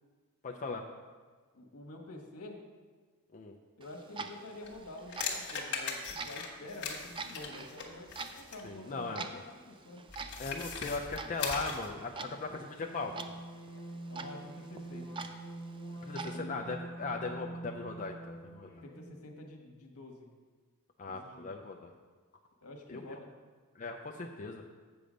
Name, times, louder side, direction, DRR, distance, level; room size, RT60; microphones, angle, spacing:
voice 1, 0.4-0.8 3.3-3.5 8.6-9.4 10.4-13.1 16.1-18.7 21.0-21.9 22.9-23.2 23.8-24.7, left 3 dB, 35° left, 2 dB, 0.4 m, -38 dB
voice 2, 1.5-2.6 3.8-8.1 8.4-10.0 14.1-15.0 16.3-16.6 18.8-20.3 21.0-21.6 22.6-23.3, left 2 dB, 75° left, 1 dB, 1.3 m, -48 dB
Clock, 3.8-16.4, right 4 dB, 20° right, 0.4 m, -47 dB
sound 1, 4.6-8.7 10.1-11.9, left 5 dB, 55° left, 1.3 m, -39 dB
sound 2, 12.4-19.2, right 2 dB, 15° left, 1.6 m, -45 dB
7.8 x 6.9 x 5.1 m, 1.4 s
head